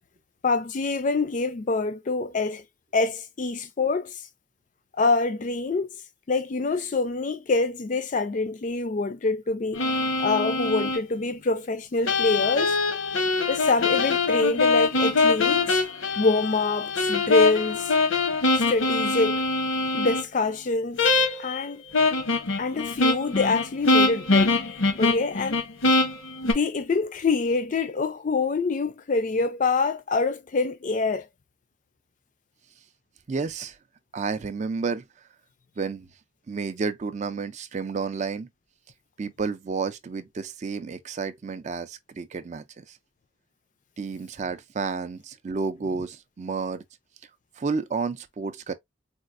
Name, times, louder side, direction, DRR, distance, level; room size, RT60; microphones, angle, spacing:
voice 1, 0.4-2.6 2.9-4.2 5.0-5.9 6.3-9.8 10.2-12.8 13.5-15.8 16.2-17.9 18.6-19.4 19.9-21.0 21.4-21.8 22.6-24.6 25.0-25.6 26.4-31.3, left 3 dB, 40° left, 0.4 m, -25 dB
sound 1, 9.7-11.0 12.1-20.2 21.0-21.6 21.9-26.5, left 3 dB, 85° left, 0.9 m, -23 dB
voice 2, 33.3-33.8 34.1-35.0 35.8-36.1 36.5-38.5 39.2-43.0 44.0-46.8 47.6-48.7, right 4 dB, 35° right, 0.3 m, -31 dB
4.2 x 2.4 x 2.4 m
head